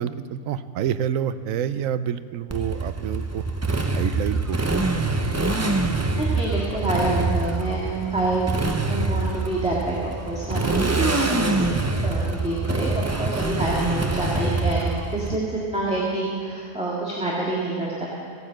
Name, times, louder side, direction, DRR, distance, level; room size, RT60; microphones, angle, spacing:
voice 1, 0.0-3.4 3.9-4.8 15.3-15.4, right 9 dB, 75° right, 13 dB, 1.0 m, -28 dB
Motorcycle, 2.5-15.3, right 3 dB, 25° right, 0.3 m, -25 dB
voice 2, 6.2-8.5 8.8-18.1, right 2 dB, 5° right, -6 dB, 1.9 m, -27 dB
16.0 x 9.4 x 7.7 m, 2.4 s
omnidirectional pair, 1.4 m